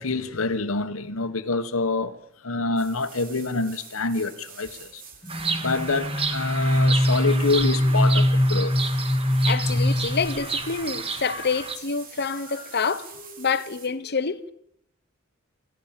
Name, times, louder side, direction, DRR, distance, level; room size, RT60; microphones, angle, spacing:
voice 1, 0.0-2.2 2.4-5.0 5.6-8.8, left 3 dB, 80° left, 1.5 m, -26 dB
sound 1, 2.8-13.9, right 6 dB, 45° right, 3.4 m, -45 dB
sound 2, 5.2-10.8, left 1 dB, 15° left, 0.9 m, -23 dB
Bird vocalization bird call bird song, 5.3-11.8, right 4 dB, 30° right, 1.9 m, -32 dB
voice 2, 9.4-13.1 13.4-14.5, left 5 dB, 55° left, 1.2 m, -27 dB
27.5 x 15.5 x 7.6 m
head